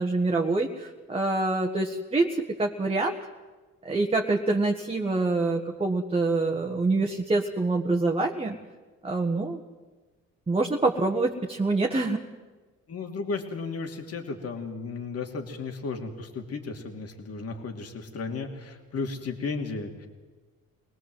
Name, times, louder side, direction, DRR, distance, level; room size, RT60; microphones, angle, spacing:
voice 1, 0.0-3.1 3.8-8.5 9.0-9.6 10.5-12.2, right 3 dB, 20° right, 1 dB, 1.5 m, -26 dB
voice 2, 12.9-20.1, left 4 dB, 55° left, 4 dB, 2.8 m, -34 dB
24.5 x 18.5 x 7.8 m, 1.3 s
cardioid pair, 90°, 30 cm